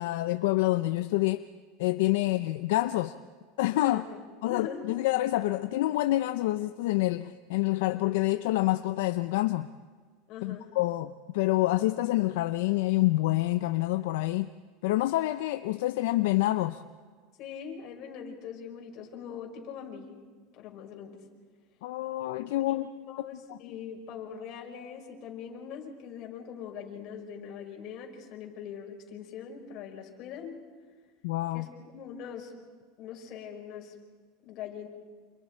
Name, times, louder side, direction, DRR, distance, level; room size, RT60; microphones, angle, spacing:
voice 1, 0.0-1.4 1.8-3.1 3.6-4.1 4.4-9.7 10.4-14.5 14.8-16.8 21.8-22.9 23.5-23.6 31.2-31.7, left 17 dB, 75° left, 10 dB, 0.7 m, -27 dB
voice 2, 4.4-4.8 10.3-10.7 17.4-20.1 20.5-21.3 22.7-30.6 31.5-32.5 33.0-33.9 34.4-34.9, left 7 dB, 45° left, 1 dB, 5.2 m, -42 dB
29.0 x 28.0 x 4.5 m, 1.5 s
supercardioid pair, 145°, 0 cm